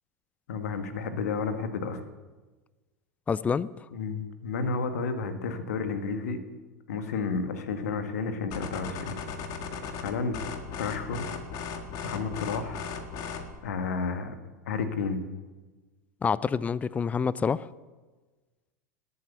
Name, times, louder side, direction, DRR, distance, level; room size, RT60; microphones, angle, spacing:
voice 1, 0.5-2.0 3.9-6.4 6.9-9.2 10.0-10.5 10.8-11.3 12.0-12.9 13.6-14.3 14.7-15.2, left 4 dB, 60° left, 8 dB, 1.7 m, -31 dB
voice 2, 3.3-3.8 16.2-17.7, left 6 dB, 15° left, 20 dB, 0.5 m, -27 dB
sound 1, 8.5-13.6, left 5 dB, 40° left, 1.7 m, -37 dB
19.5 x 8.7 x 7.1 m, 1.3 s
figure-of-eight pair, 85°, 9 cm